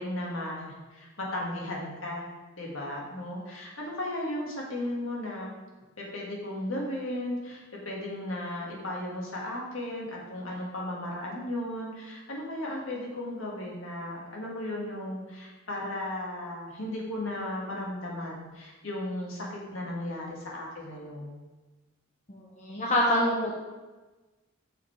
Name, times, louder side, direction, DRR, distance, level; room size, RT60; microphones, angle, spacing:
voice 1, 0.0-2.3 2.6-5.5 6.0-21.4, left 1 dB, 75° left, -3 dB, 1.8 m, -35 dB
voice 2, 22.3-23.5, equal, 35° left, -3 dB, 0.8 m, -26 dB
6.3 x 5.3 x 4.5 m, 1.2 s
head